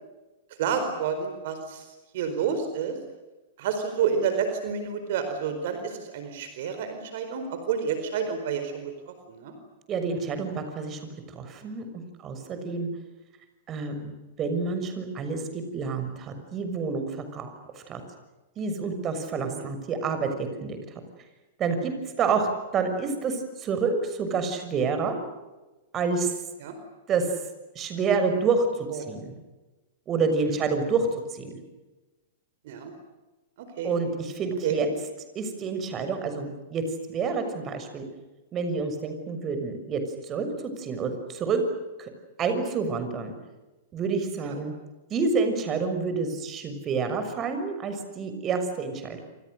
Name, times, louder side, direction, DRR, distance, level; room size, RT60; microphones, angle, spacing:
voice 1, 0.6-1.9 2.1-3.0 3.6-9.6 12.5-12.8 19.5-19.7 26.6-26.8 28.9-29.1 30.4-30.6 32.6-32.9 33.6-33.9 34.6-34.8 44.5-44.6, right 6 dB, 60° right, 7 dB, 4.5 m, -30 dB
voice 2, 9.9-11.0 11.3-12.9 13.7-14.1 14.4-18.0 18.6-20.8 21.6-21.9 22.2-25.2 25.9-26.3 27.1-27.3 27.7-29.4 30.1-31.6 33.8-34.9 35.3-36.8 37.1-38.0 38.5-41.6 42.0-42.1 42.4-43.3 43.9-44.7 45.1-49.2, right 4 dB, 30° right, 8 dB, 6.5 m, -28 dB
28.0 x 28.0 x 6.7 m, 1.1 s
hypercardioid pair, 105°, 0 cm